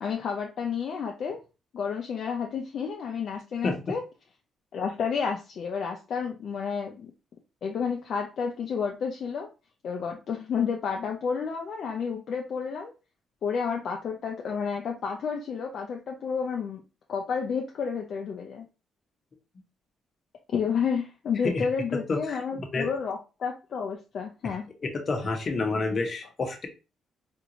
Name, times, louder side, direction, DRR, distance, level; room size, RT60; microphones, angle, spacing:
voice 1, 0.0-1.4 1.7-4.0 4.7-7.1 7.6-9.5 9.8-12.9 13.4-16.8 17.1-18.7 20.5-24.6, left 6 dB, 60° left, 1 dB, 0.5 m, -30 dB
voice 2, 22.1-22.4 22.7-22.9 24.8-26.7, left 3 dB, 45° left, 4 dB, 0.9 m, -28 dB
3.5 x 2.5 x 2.9 m, 0.30 s
cardioid pair, 90°, 0 cm